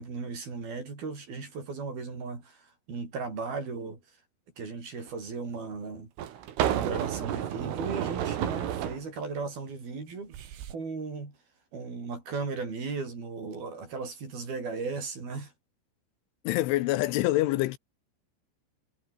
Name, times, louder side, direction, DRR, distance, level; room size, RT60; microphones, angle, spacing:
voice 1, 0.0-4.0 4.6-6.1 6.7-10.3 10.7-11.4 11.7-15.5, right 4 dB, 50° right, 8.5 m, -36 dB
sound 1, 5.1-5.2 6.2-9.0 10.3-10.7, right 10 dB, 85° right, 5.1 m, -31 dB
voice 2, 16.4-17.8, left 17 dB, 80° left, 3.3 m, -26 dB
omnidirectional pair, 5.6 m